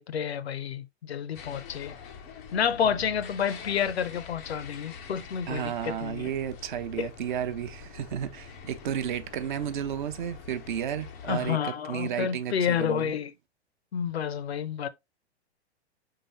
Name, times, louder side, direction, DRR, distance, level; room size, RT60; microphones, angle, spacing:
voice 1, 0.0-1.9 2.5-6.3 7.0-7.1 11.2-13.3 13.9-14.9, left 8 dB, 70° left, 0.5 m, -29 dB
sound 1, 1.3-11.5, left 6 dB, 15° left, 0.3 m, -45 dB
voice 2, 5.5-13.1, right 9 dB, 45° right, 0.6 m, -33 dB
4.9 x 3.7 x 2.8 m
figure-of-eight pair, 105°, 34 cm